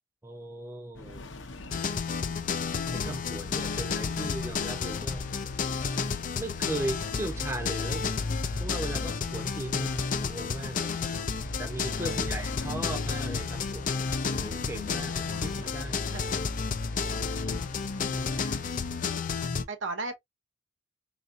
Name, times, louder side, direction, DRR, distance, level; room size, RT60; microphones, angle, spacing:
voice 1, 0.2-1.3 2.9-5.2 6.4-8.1 8.6-11.0 11.6-16.1 18.0-18.5, right 1 dB, 15° right, 0.8 m, -38 dB
sound 1, 0.9-19.2, left 1 dB, 80° left, 0.8 m, -44 dB
sound 2, 1.7-19.6, left 5 dB, 45° left, 0.5 m, -31 dB
voice 2, 12.0-12.4 14.9-15.7 16.1-16.4 17.4-17.5 18.3-18.6 19.7-20.2, right 3 dB, 85° right, 0.8 m, -39 dB
4.1 x 2.6 x 2.6 m
head